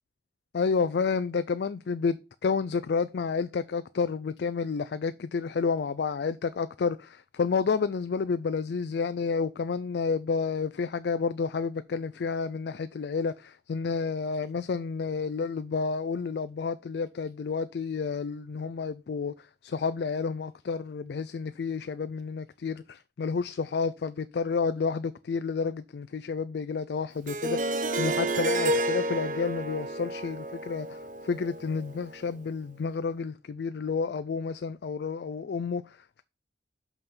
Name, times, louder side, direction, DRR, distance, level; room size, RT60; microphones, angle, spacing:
voice 1, 0.5-36.2, left 5 dB, 65° left, 0.4 m, -30 dB
Harp, 27.3-32.2, right 1 dB, 45° right, 0.7 m, -30 dB
6.0 x 5.4 x 5.5 m
head